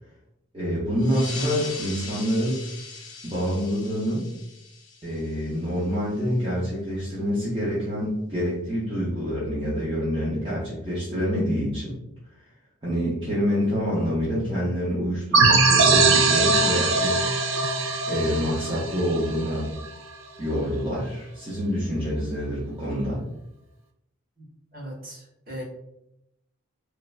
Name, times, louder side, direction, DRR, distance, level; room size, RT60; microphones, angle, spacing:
voice 1, 0.5-2.6 3.2-4.2 5.0-11.9 12.8-17.3 18.1-19.7 20.4-23.2, equal, 25° right, -10 dB, 0.6 m, -26 dB
sound 1, 1.0-6.1, left 4 dB, 65° left, 0.5 m, -40 dB
sound 2, 15.3-19.8, right 3 dB, 65° right, 0.3 m, -21 dB
voice 2, 24.7-25.6, equal, 45° right, -6 dB, 1.2 m, -38 dB
3.1 x 2.1 x 2.4 m, 0.83 s
head